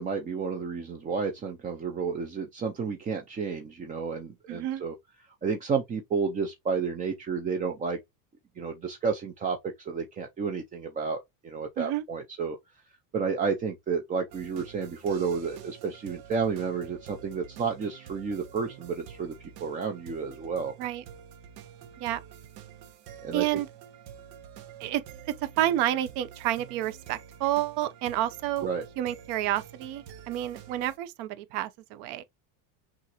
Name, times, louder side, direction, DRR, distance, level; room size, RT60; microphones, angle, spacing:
voice 1, 0.0-4.9 5.4-8.0 8.6-12.6 13.1-19.3 19.6-20.7 23.2-23.4 28.6-28.9, right 5 dB, 20° right, 0.4 m, -31 dB
voice 2, 4.5-4.8 11.8-12.0 20.8-21.0 22.0-22.2 23.3-23.7 24.8-28.7 29.0-32.2, right 13 dB, 55° right, 0.7 m, -30 dB
sound 1, 14.3-31.0, right 9 dB, 85° right, 1.1 m, -48 dB
6.1 x 2.5 x 2.9 m
supercardioid pair, 120°, 49 cm